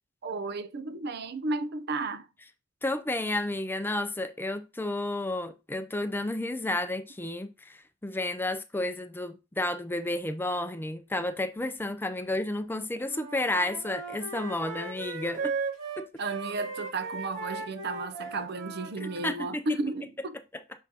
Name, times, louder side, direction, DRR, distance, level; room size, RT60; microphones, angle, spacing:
voice 1, 0.2-2.3 16.2-20.4, right 3 dB, 55° right, 0.6 m, -33 dB
voice 2, 2.8-15.5 16.0-16.1 19.0-19.6, left 1 dB, 10° left, 0.5 m, -31 dB
Wind instrument woodwind instrument, 13.0-19.4, right 4 dB, 75° right, 2.3 m, -37 dB
6.3 x 5.6 x 2.8 m
head